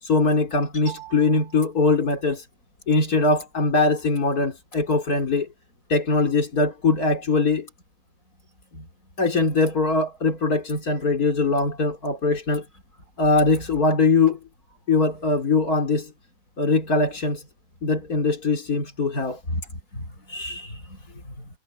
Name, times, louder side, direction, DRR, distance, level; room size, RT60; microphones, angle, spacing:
voice 1, 0.0-2.4 2.9-5.5 5.9-7.7 8.7-8.8 9.2-12.6 13.2-14.4 14.9-16.1 16.6-17.4 17.8-19.4, left 3 dB, 85° left, 3.9 m, -21 dB
voice 2, 0.9-1.5 19.5-21.5, equal, 65° left, 8.7 m, -35 dB
omnidirectional pair, 1.5 m